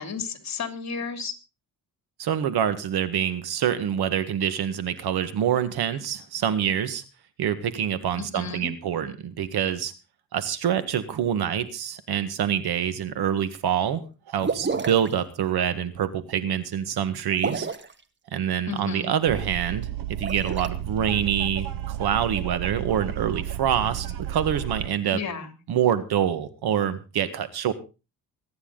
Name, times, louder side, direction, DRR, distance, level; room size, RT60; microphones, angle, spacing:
voice 1, 0.0-1.3 8.2-8.7 18.7-19.1 25.1-25.5, left 5 dB, 45° left, 8 dB, 3.1 m, -33 dB
voice 2, 2.2-7.0 7.4-9.9 10.3-14.0 14.3-17.7 18.3-25.2 25.7-27.7, right 9 dB, 80° right, 13 dB, 1.8 m, -26 dB
sound 1, 14.4-15.1 17.3-17.9 20.1-20.7, right 4 dB, 30° right, 1.3 m, -29 dB
sound 2, 19.3-24.9, right 12 dB, 60° right, 0.9 m, -32 dB
24.0 x 9.8 x 3.9 m, 0.31 s
cardioid pair, 110°, 37 cm